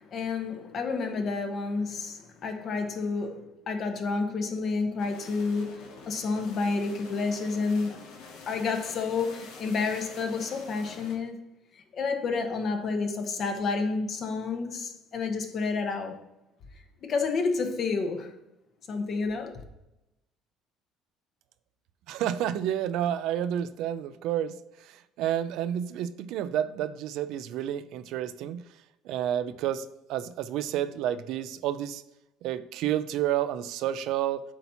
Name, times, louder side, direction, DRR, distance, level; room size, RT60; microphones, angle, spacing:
voice 1, 0.0-8.0 8.5-11.4 11.7-16.2 17.0-18.3 18.9-19.6, left 4 dB, 45° left, 1.0 m, -30 dB
sound 1, 5.0-11.2, left 4 dB, 80° left, 1.4 m, -47 dB
voice 2, 22.1-28.6 29.1-32.0 32.4-34.4, right 11 dB, 75° right, 0.4 m, -30 dB
8.1 x 2.8 x 5.5 m
cardioid pair, 120°, 0 cm